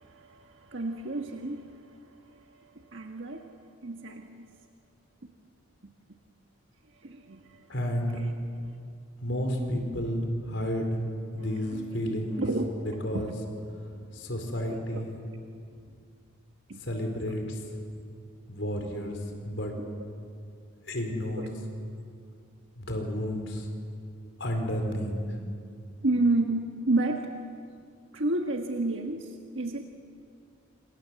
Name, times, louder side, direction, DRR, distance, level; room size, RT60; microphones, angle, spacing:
voice 1, 0.0-3.6 3.8-4.5 7.0-7.7 8.1-8.3 8.6-8.7 11.4-11.9 12.4-13.3 13.8-14.0 14.7-15.0 16.7-16.8 19.7-19.9 21.3-21.5 26.0-27.3 28.1-29.8, right 2 dB, 70° right, 3 dB, 1.5 m, -31 dB
voice 2, 7.7-8.2 9.2-11.0 11.3-12.4 13.0-13.3 14.1-15.1 16.8-17.6 18.5-19.2 19.4-19.7 20.9-21.4 22.8-23.7 24.4-25.1, equal, 65° left, 3 dB, 4.6 m, -31 dB
27.5 x 27.0 x 7.7 m, 2.4 s
head